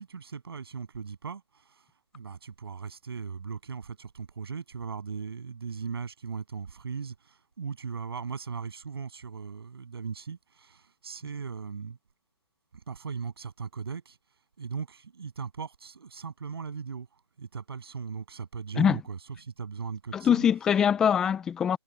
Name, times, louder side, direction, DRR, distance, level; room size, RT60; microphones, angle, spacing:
voice 1, 0.0-1.9 2.1-12.0 12.7-14.2 14.6-17.1 17.4-20.4, right 6 dB, 60° right, 7.8 m, -38 dB
voice 2, 20.1-21.8, left 8 dB, 5° left, 0.4 m, -23 dB
hypercardioid pair, 160°, 14 cm